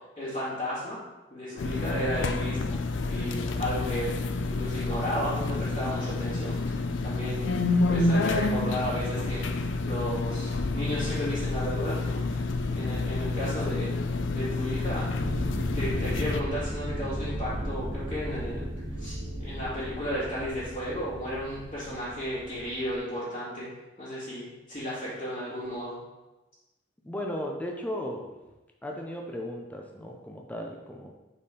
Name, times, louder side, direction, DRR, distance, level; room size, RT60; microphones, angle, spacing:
voice 1, 0.2-1.0 1.3-4.2 4.4-7.5 7.9-14.0 14.3-15.1 15.7-18.7 19.0-23.7 24.0-26.0, equal, 35° left, -14 dB, 2.4 m, -34 dB
sound 1, 1.6-16.4, left 3 dB, 80° left, 0.5 m, -29 dB
sound 2, 15.2-23.0, equal, 75° right, 1.3 m, -36 dB
voice 2, 27.0-28.3 28.8-31.1, left 1 dB, 10° left, 0 dB, 0.6 m, -36 dB
5.3 x 4.3 x 5.2 m, 1.1 s
head